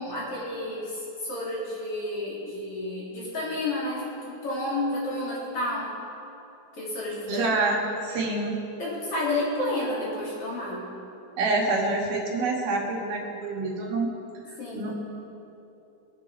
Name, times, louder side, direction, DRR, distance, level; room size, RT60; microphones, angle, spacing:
voice 1, 0.0-5.9 6.7-7.6 8.8-10.8 14.6-14.9, left 1 dB, 40° left, -7 dB, 3.9 m, -31 dB
voice 2, 7.3-8.6 11.4-14.1 14.5-14.9, right 3 dB, 90° right, -1 dB, 3.8 m, -27 dB
24.0 x 9.3 x 4.5 m, 2.8 s
omnidirectional pair, 4.2 m